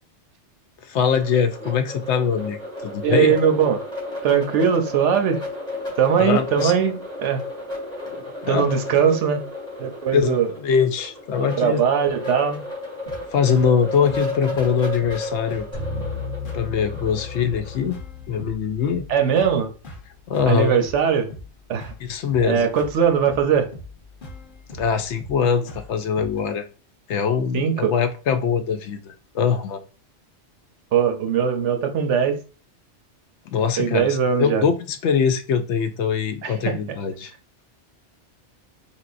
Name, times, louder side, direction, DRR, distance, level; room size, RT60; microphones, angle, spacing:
voice 1, 0.8-3.3 6.2-6.7 8.1-8.7 9.1-9.2 10.1-11.8 13.3-15.7 16.5-18.0 18.3-19.0 20.3-20.8 22.0-22.7 24.8-26.7 27.1-29.8 33.5-37.3, left 6 dB, 75° left, 9 dB, 0.9 m, -22 dB
sound 1, 1.2-17.9, left 2 dB, 5° left, 1.9 m, -33 dB
voice 2, 3.0-3.8 4.2-5.4 6.0-7.4 8.5-9.4 9.8-10.5 11.6-12.6 19.1-19.7 20.5-21.3 21.7-21.9 22.4-23.7 27.5-27.9 30.9-32.4 33.8-34.6 36.4-36.8, right 7 dB, 85° right, 6 dB, 1.1 m, -20 dB
sound 2, 13.1-26.5, left 1 dB, 45° left, 1.1 m, -42 dB
sound 3, 15.7-20.1, left 4 dB, 30° right, 2.2 m, -35 dB
4.3 x 3.6 x 2.5 m, 0.37 s
omnidirectional pair, 1.2 m